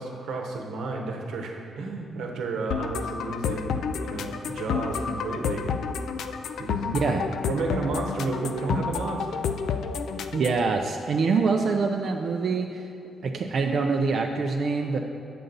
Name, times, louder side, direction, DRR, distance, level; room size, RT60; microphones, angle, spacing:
voice 1, 0.0-5.7 6.6-7.2 7.5-9.4, right 3 dB, 80° right, 2 dB, 1.0 m, -32 dB
sound 1, 2.7-10.7, left 6 dB, 70° left, 0.3 m, -30 dB
voice 2, 10.3-12.9 13.2-15.0, right 4 dB, 50° right, 3 dB, 0.4 m, -25 dB
8.0 x 6.6 x 3.9 m, 2.7 s
cardioid pair, 150°, 0 cm